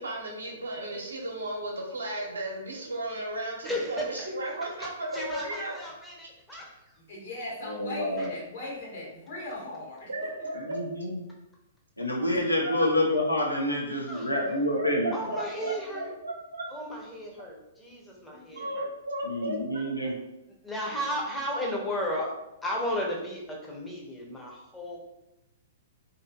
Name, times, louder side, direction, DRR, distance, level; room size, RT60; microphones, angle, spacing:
voice 1, 0.0-5.7 10.1-10.8 12.6-12.9 14.4-16.7 18.6-19.8, right 1 dB, 75° right, -1 dB, 0.7 m, -35 dB
voice 2, 3.6-4.0 5.1-6.8 8.2-8.3 14.1-14.3 15.1-16.1 16.7-18.9 20.6-22.3 22.6-25.0, equal, 5° left, -3 dB, 0.7 m, -34 dB
voice 3, 7.1-10.5 15.5-16.0 17.1-17.2 18.1-18.7, left 2 dB, 60° left, -4 dB, 1.2 m, -40 dB
voice 4, 7.6-8.3 10.6-11.2 12.0-15.1 19.2-20.1, left 1 dB, 90° left, -1 dB, 0.6 m, -28 dB
2.6 x 2.5 x 2.3 m, 0.89 s
figure-of-eight pair, 110°, 0 cm